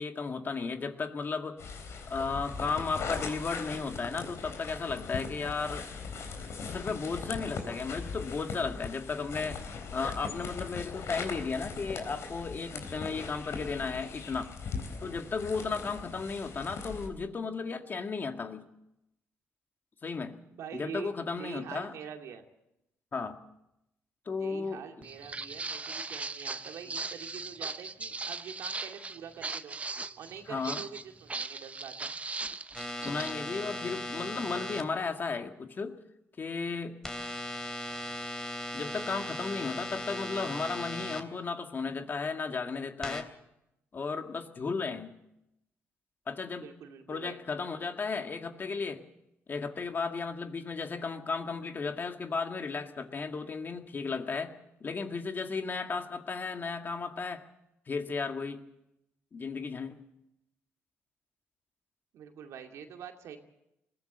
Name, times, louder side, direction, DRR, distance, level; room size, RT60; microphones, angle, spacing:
voice 1, 0.0-1.6 2.1-5.9 6.7-9.6 9.9-14.5 15.0-18.6 20.0-20.4 20.7-21.9 23.1-23.4 24.3-25.1 30.5-30.8 33.0-36.0 36.4-37.0 38.7-43.3 43.9-45.1 46.3-46.7 47.1-49.0 49.5-54.5 54.8-57.5 57.9-58.6 59.3-60.0, left 4 dB, 40° left, 6 dB, 2.0 m, -34 dB
sound 1, 1.6-17.1, left 5 dB, 65° left, 3.9 m, -40 dB
voice 2, 20.5-22.5 24.4-29.8 30.2-32.1 46.6-47.4 62.1-63.4, right 7 dB, 75° right, 4 dB, 2.4 m, -45 dB
Walk footsteps, 25.0-33.3, right 3 dB, 25° right, 0.8 m, -39 dB
sound 2, 32.7-34.8 37.0-41.2 43.0-43.2, left 1 dB, 10° left, 3.0 m, -38 dB
21.0 x 16.0 x 7.9 m, 0.85 s
cardioid pair, 75°, 5 cm